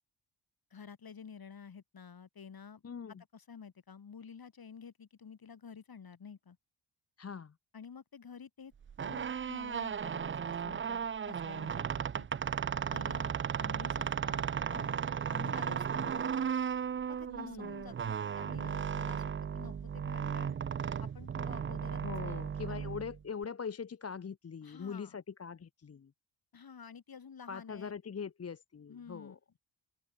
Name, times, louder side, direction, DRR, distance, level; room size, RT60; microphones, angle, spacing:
voice 1, 0.7-2.8 3.1-6.6 7.7-8.7 9.0-12.3 12.9-15.0 15.3-16.6 17.1-20.6 21.0-22.4 22.7-22.9 24.6-25.2 26.5-27.9 28.9-29.4, left 6 dB, 50° left, 3.1 m, -50 dB
voice 2, 2.8-3.2 7.2-7.5 17.3-17.8 22.0-26.1 27.5-29.4, left 6 dB, 35° left, 0.8 m, -42 dB
sound 1, 8.8-23.4, right 7 dB, 30° right, 0.4 m, -35 dB
open air
cardioid pair, 85°, 45 cm